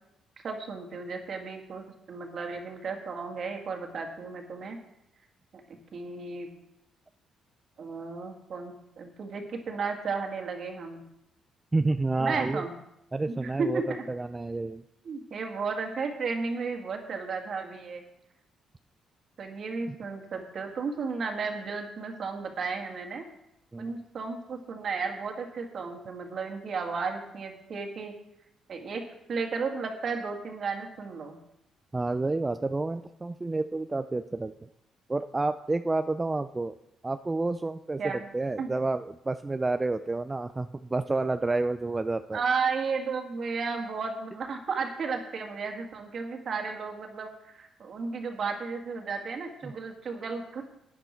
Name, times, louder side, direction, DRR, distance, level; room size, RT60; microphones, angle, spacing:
voice 1, 0.4-4.8 5.7-6.5 7.8-11.0 12.2-12.7 13.3-14.0 15.0-18.0 19.4-23.2 23.8-28.1 28.7-31.4 38.0-38.3 38.6-38.7 42.3-50.6, right 4 dB, 55° right, 3 dB, 2.1 m, -34 dB
voice 2, 11.7-12.6 13.1-14.8 19.9-20.0 23.7-24.0 31.9-34.5 35.1-36.8 37.0-42.4 49.6-49.7, right 2 dB, 20° right, 9 dB, 0.4 m, -29 dB
12.0 x 9.6 x 4.5 m, 0.83 s
cardioid pair, 90°, 0 cm